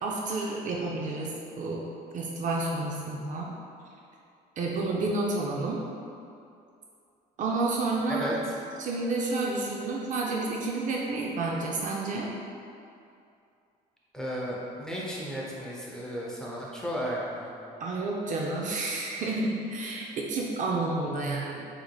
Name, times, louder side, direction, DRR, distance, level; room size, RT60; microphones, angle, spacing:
voice 1, 0.0-1.8 2.1-3.5 4.6-5.8 7.4-8.2 8.8-12.3 17.8-21.7, right 3 dB, 50° right, -2 dB, 0.4 m, -30 dB
voice 2, 14.1-17.5, equal, 5° left, -6 dB, 0.7 m, -34 dB
4.3 x 2.9 x 2.3 m, 2.5 s
cardioid pair, 110°, 17 cm